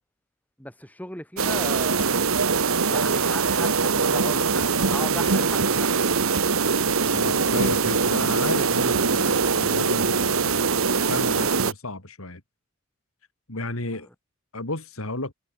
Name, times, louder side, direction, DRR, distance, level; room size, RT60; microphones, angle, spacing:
voice 1, 0.6-2.2 2.9-6.1, left 1 dB, 5° left, 4.9 m, -37 dB
sound 1, 1.4-11.7, right 5 dB, 80° right, 1.3 m, -22 dB
voice 2, 7.1-12.4 13.5-14.1 14.5-15.3, left 2 dB, 80° left, 3.8 m, -33 dB
head